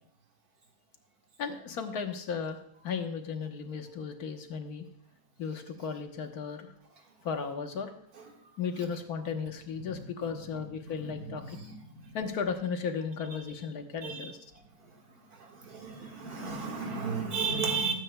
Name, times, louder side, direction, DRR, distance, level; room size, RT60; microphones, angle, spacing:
voice 1, 1.4-2.6 2.8-4.9 5.4-6.7 7.2-7.9 8.6-11.4 12.1-14.4, left 6 dB, 80° left, 6 dB, 1.5 m, -35 dB
voice 2, 11.0-12.0 14.0-14.3 15.6-17.9, right 5 dB, 85° right, 0 dB, 2.2 m, -34 dB
20.5 x 8.9 x 2.2 m, 0.72 s
omnidirectional pair, 1.6 m